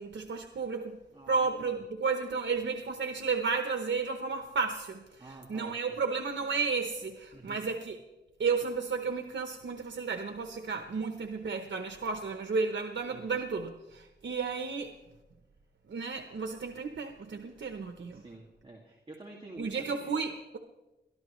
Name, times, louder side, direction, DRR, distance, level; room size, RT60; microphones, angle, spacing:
voice 1, 0.0-1.0 1.3-8.0 8.4-14.9 15.9-18.2 19.6-20.6, right 4 dB, 90° right, 6 dB, 0.8 m, -33 dB
voice 2, 1.1-1.8 5.2-6.0 7.3-7.6 13.1-13.3 18.1-20.1, right 2 dB, 25° right, -2 dB, 2.0 m, -49 dB
22.0 x 13.5 x 3.1 m, 1.1 s
wide cardioid pair, 110°, 19 cm